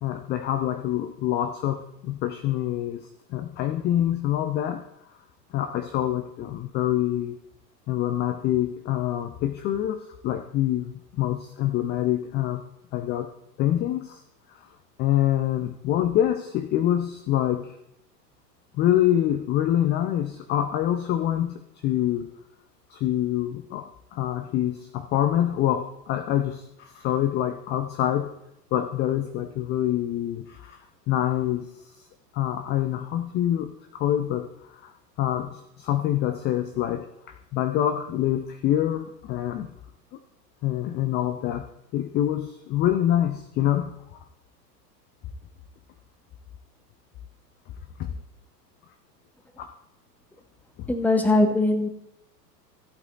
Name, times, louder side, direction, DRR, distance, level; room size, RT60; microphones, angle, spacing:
voice 1, 0.0-4.8 5.5-7.4 7.9-12.6 12.9-13.3 13.6-14.2 15.0-17.8 18.7-22.4 22.9-28.4 28.7-30.8 31.1-31.9 32.3-34.9 35.2-39.7 40.6-41.7 41.9-44.0 48.0-48.1 49.6-49.7 50.8-50.9, left 12 dB, 20° left, 8 dB, 0.6 m, -26 dB
voice 2, 50.9-51.9, left 2 dB, 5° left, 6 dB, 1.1 m, -21 dB
14.5 x 8.1 x 4.1 m, 0.81 s
figure-of-eight pair, 95°, 50 cm